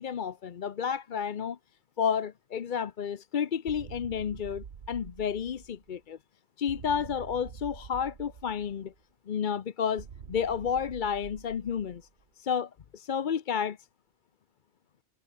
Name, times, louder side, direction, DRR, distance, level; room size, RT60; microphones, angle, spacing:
voice 1, 0.0-1.6 2.0-6.2 6.6-8.9 9.3-12.0 12.4-13.8, left 7 dB, 50° left, 0.8 m, -31 dB
sound 1, 3.7-6.0 6.7-9.0 10.0-12.2, right 7 dB, 70° right, 1.4 m, -46 dB
omnidirectional pair, 1.2 m